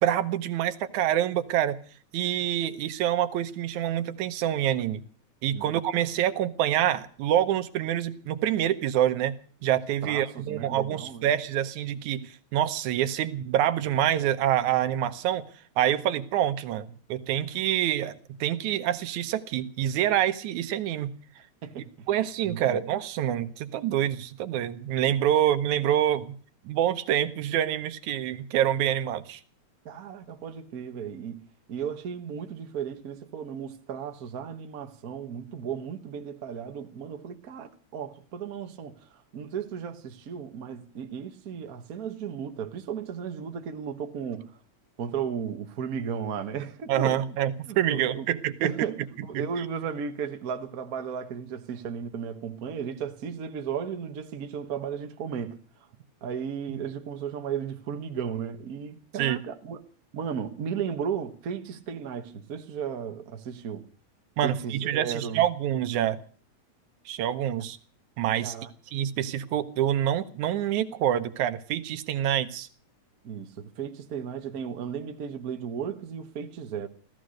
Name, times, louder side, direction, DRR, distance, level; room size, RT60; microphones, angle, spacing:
voice 1, 0.0-1.8 2.1-5.0 5.4-9.3 9.6-15.4 15.8-18.2 18.4-21.1 22.1-26.4 26.7-29.4 46.9-48.7 49.4-49.5 56.7-56.8 59.2-59.4 64.4-66.2 67.1-67.8 68.2-68.6 68.9-72.7, right 11 dB, 80° right, 2.3 m, -26 dB
voice 2, 10.0-11.3 21.6-22.1 22.4-22.8 29.8-31.4 31.7-44.5 45.0-47.4 47.7-48.3 48.6-55.6 56.2-59.8 60.1-63.8 64.4-65.4 68.4-68.7 73.2-76.9, right 7 dB, 50° right, 1.1 m, -35 dB
16.0 x 14.0 x 6.4 m
omnidirectional pair, 3.4 m